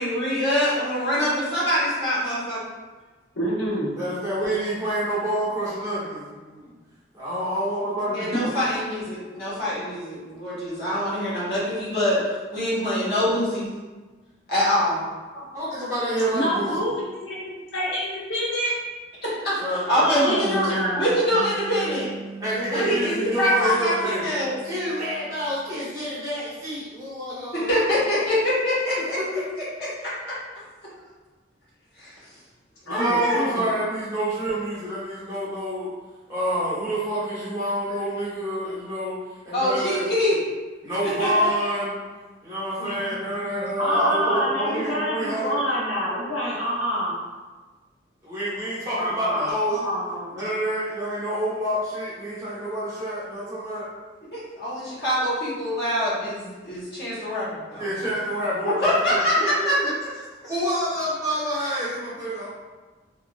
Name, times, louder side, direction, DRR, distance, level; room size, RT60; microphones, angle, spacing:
voice 1, 0.0-2.6 8.1-12.2 12.5-13.7 14.5-15.0 19.2-22.1 22.5-24.6 27.5-29.2 30.0-30.4 32.0-32.1 32.9-33.4 39.5-40.4 41.0-41.5 42.8-43.3 43.9-44.7 54.3-57.8 58.6-59.7, equal, 55° left, -9 dB, 1.5 m, -24 dB
voice 2, 3.3-4.0 8.3-8.5 16.3-16.9 17.2-18.7 20.0-21.2 32.9-33.6 43.8-47.2 49.0-50.3, equal, 90° left, -8 dB, 1.3 m, -27 dB
voice 3, 4.0-6.8 7.1-8.3 15.5-16.7 19.6-20.0 22.4-24.2 24.6-28.0 29.2-29.4 32.9-35.9 36.3-39.2 39.4-40.0 40.8-42.0 42.4-45.6 48.2-49.8 50.3-53.9 57.8-59.9 60.4-62.5, right 1 dB, 15° right, -11 dB, 1.1 m, -28 dB
sound 1, 21.3-25.9, right 4 dB, 35° left, 0.9 m, -41 dB
3.7 x 2.9 x 2.4 m, 1.3 s
head